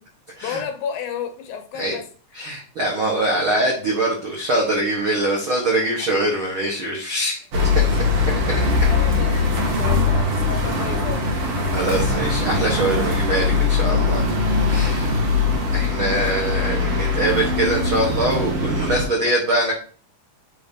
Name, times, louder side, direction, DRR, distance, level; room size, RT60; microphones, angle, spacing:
voice 1, 0.4-2.0 2.4-2.5 5.4-5.7 7.7-8.0 8.5-8.6 8.9-11.3 14.8-16.0, left 7 dB, 75° left, 2.3 m, -33 dB
voice 2, 2.3-7.7 8.5-8.6 11.7-14.2 14.7-15.1 15.7-19.7, right 1 dB, 80° right, 1.1 m, -23 dB
sound 1, 7.5-19.0, left 3 dB, 60° right, 1.7 m, -21 dB
7.9 x 2.8 x 5.2 m
omnidirectional pair, 4.5 m